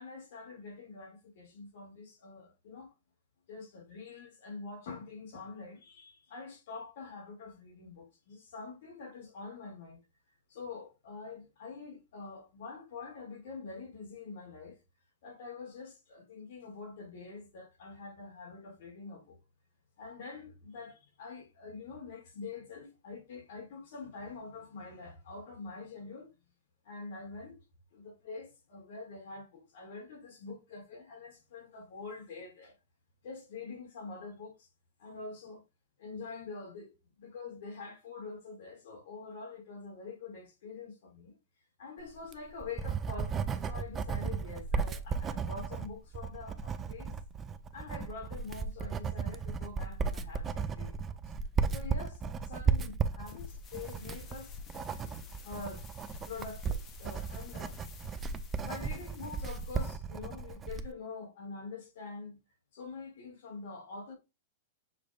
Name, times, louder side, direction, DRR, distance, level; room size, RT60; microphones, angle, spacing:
voice 1, 0.0-2.9 3.5-10.0 10.5-14.8 15.2-19.4 20.0-26.3 26.8-27.6 27.9-32.7 33.2-34.7 35.0-35.6 36.0-41.3 41.8-47.1 47.7-51.0 51.7-54.6 55.4-55.8 56.2-57.8 58.6-62.4 62.7-64.1, left 4 dB, 65° left, 2.5 m, -45 dB
Writing, 42.2-60.9, right 5 dB, 20° right, 0.4 m, -35 dB
sound 1, 53.2-59.9, left 5 dB, 30° left, 0.9 m, -50 dB
6.5 x 3.2 x 2.5 m
hypercardioid pair, 125°, 0 cm